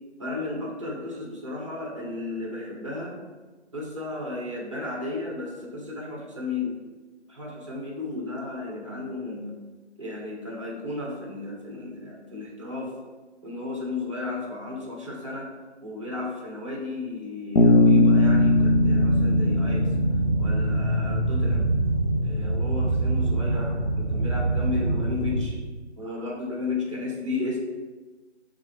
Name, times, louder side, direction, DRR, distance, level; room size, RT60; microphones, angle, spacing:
voice 1, 0.2-3.2 3.7-6.8 7.3-9.6 10.0-12.9 13.4-15.5 15.8-19.9 20.4-21.7 22.2-25.6 26.0-27.6, left 3 dB, 25° right, -2 dB, 0.7 m, -33 dB
Bass guitar, 17.6-21.4, left 2 dB, 80° left, 0.7 m, -20 dB
sound 1, 18.2-25.4, right 2 dB, 15° left, 0.6 m, -25 dB
6.0 x 2.4 x 3.0 m, 1.3 s
figure-of-eight pair, 150°, 35 cm